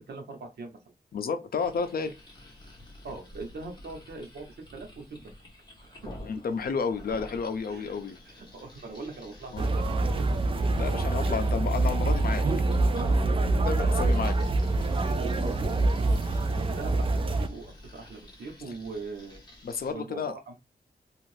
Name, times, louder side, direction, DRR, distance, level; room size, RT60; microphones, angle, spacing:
voice 1, 0.1-0.8 3.0-5.3 5.8-6.1 7.7-7.9 8.2-10.4 13.8-14.2 15.2-15.8 16.8-19.4 19.9-20.6, right 3 dB, 85° right, 0.9 m, -41 dB
voice 2, 1.1-2.1 6.2-8.2 9.5-9.7 10.8-12.4 13.6-14.3 19.6-20.4, left 5 dB, 65° left, 0.5 m, -31 dB
sound 1, 1.6-19.9, left 1 dB, 25° left, 0.9 m, -49 dB
sound 2, 9.6-17.5, right 2 dB, 35° right, 0.3 m, -25 dB
2.6 x 2.4 x 3.1 m
wide cardioid pair, 150°, 17 cm